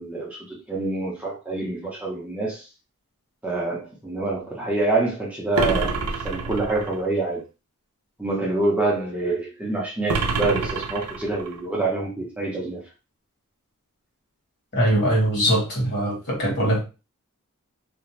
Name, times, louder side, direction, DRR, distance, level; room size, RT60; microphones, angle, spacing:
voice 1, 0.0-2.6 3.4-6.0 6.2-7.4 8.2-12.8, right 2 dB, 5° right, 0.6 m, -26 dB
sound 1, 5.5-7.0 10.1-11.6, right 4 dB, 80° right, 0.5 m, -27 dB
voice 2, 14.7-16.8, right 1 dB, 50° left, 1.3 m, -21 dB
2.5 x 2.1 x 3.0 m
head